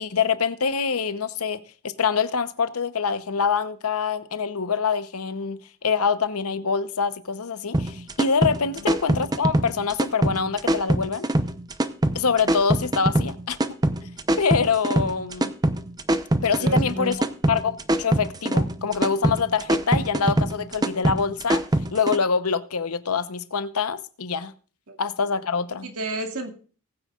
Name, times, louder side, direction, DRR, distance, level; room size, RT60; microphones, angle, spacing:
voice 1, 0.0-11.3 12.1-13.8 14.4-15.5 16.4-21.6 21.9-24.5 25.0-25.9, left 5 dB, 90° left, 0.9 m, -25 dB
sound 1, 7.7-22.2, right 1 dB, 20° right, 0.7 m, -23 dB
voice 2, 16.6-17.2 24.9-25.0 25.8-26.5, right 2 dB, 85° right, 2.1 m, -31 dB
19.5 x 9.3 x 2.4 m
head